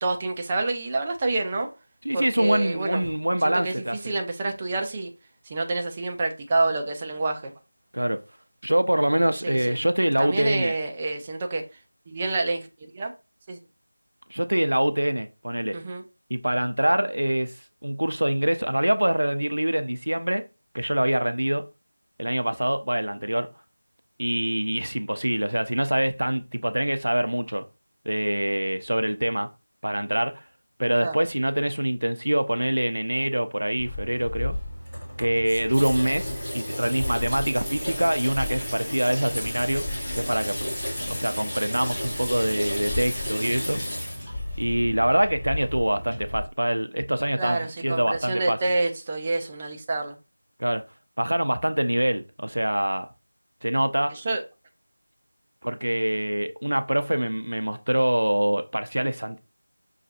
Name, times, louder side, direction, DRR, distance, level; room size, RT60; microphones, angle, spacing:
voice 1, 0.0-1.7 2.1-3.0 3.4-5.1 5.5-7.5 9.4-9.8 10.2-11.6 12.1-13.1 13.5-13.6 15.7-16.0 31.0-31.2 47.4-50.2 54.1-54.4, right 2 dB, 15° right, 0.4 m, -28 dB
voice 2, 2.0-4.0 7.9-8.2 8.6-10.7 14.3-15.8 16.3-17.5 17.8-20.4 20.7-21.6 22.2-23.5 24.2-27.6 28.1-29.5 29.8-30.4 30.8-34.6 35.2-39.8 40.2-40.6 41.1-43.8 44.6-48.6 50.6-50.8 51.2-53.1 53.6-54.1 55.6-59.4, right 1 dB, 75° right, 0.5 m, -25 dB
Water tap faucet / Sink (filling or washing), 33.8-46.4, left 1 dB, 10° left, 1.6 m, -32 dB
5.8 x 2.3 x 2.6 m
figure-of-eight pair, 170°, 0 cm